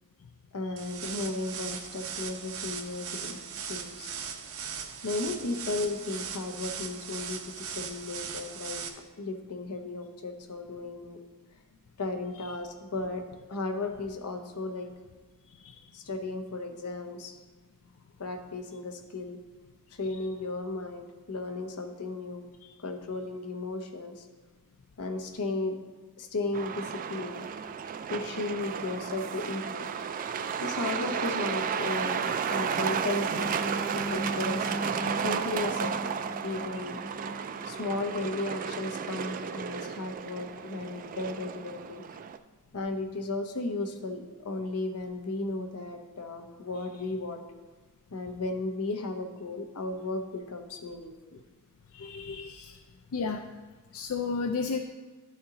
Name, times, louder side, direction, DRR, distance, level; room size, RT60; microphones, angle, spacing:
voice 1, 0.5-3.4 3.7-4.1 5.0-8.8 9.2-11.2 12.0-13.2 13.5-14.9 15.9-17.3 18.2-19.4 19.9-22.5 22.8-24.3 25.0-25.8 26.2-27.5 28.1-30.0 30.6-33.6 33.9-34.7 35.2-36.1 36.4-37.0 37.5-42.0 42.7-47.4 48.1-51.4, left 2 dB, 85° left, 4 dB, 0.9 m, -35 dB
sound 1, 0.8-8.9, right 7 dB, 70° right, 0.8 m, -39 dB
voice 2, 15.5-15.8 22.6-22.7 51.9-52.8 53.1-53.4 53.9-54.8, left 5 dB, 70° left, 4 dB, 0.4 m, -33 dB
Truck, 26.5-42.4, right 7 dB, 40° right, 0.3 m, -33 dB
sound 2, 33.0-39.0 39.4-39.6 40.0-40.2, equal, 45° left, 1.2 m, -39 dB
12.0 x 4.3 x 3.8 m, 1.3 s
head